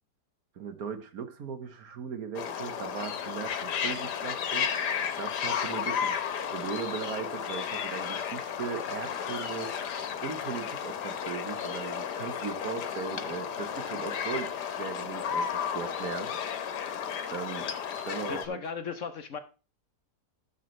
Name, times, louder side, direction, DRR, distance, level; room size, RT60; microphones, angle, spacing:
voice 1, 0.5-4.7 5.2-6.1 6.5-9.7 10.2-16.5 17.3-17.7 18.1-18.6, right 6 dB, 60° right, 1.5 m, -38 dB
sound 1, 2.3-18.5, left 7 dB, 80° left, 1.6 m, -33 dB
voice 2, 18.3-19.4, left 6 dB, 55° left, 1.0 m, -36 dB
13.0 x 6.9 x 3.2 m
omnidirectional pair, 1.8 m